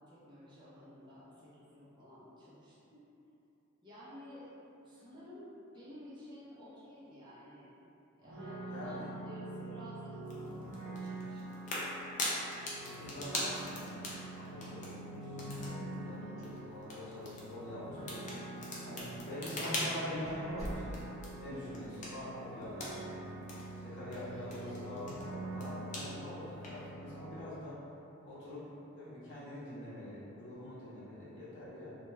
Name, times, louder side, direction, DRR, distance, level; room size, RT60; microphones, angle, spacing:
voice 1, 0.1-3.1 3.8-4.5 4.8-7.7 8.2-11.6 16.0-16.4 24.1-24.8, equal, 20° right, -9 dB, 0.5 m, -52 dB
sound 1, 8.2-27.4, right 2 dB, 65° right, 0.7 m, -45 dB
voice 2, 8.7-9.1 12.8-15.3 15.8-18.3 18.8-21.0 21.4-23.0 23.7-27.8 28.2-31.9, left 1 dB, 55° left, -10 dB, 0.8 m, -45 dB
sound 2, 10.2-26.9, left 1 dB, 35° left, 0.4 m, -44 dB
sound 3, 16.4-17.0 17.3-17.4 18.1-18.2 19.0-19.2 19.6-19.7 20.2-21.4, equal, 15° left, 1.0 m, -45 dB
2.2 x 2.2 x 3.0 m, 2.8 s
head